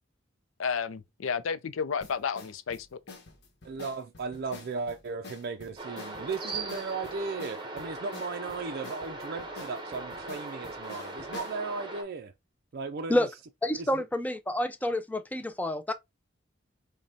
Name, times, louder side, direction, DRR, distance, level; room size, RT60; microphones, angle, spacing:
voice 1, 0.6-3.0, left 6 dB, 85° left, 0.5 m, -32 dB
sound 1, 2.0-11.6, left 4 dB, 60° left, 1.1 m, -48 dB
voice 2, 3.6-12.3 12.7-13.3 13.8-14.0, right 4 dB, 50° right, 0.4 m, -36 dB
sound 2, 5.8-12.0, right 2 dB, 25° right, 0.8 m, -39 dB
voice 3, 13.6-15.9, left 1 dB, 10° left, 0.4 m, -28 dB
5.1 x 2.2 x 2.7 m
head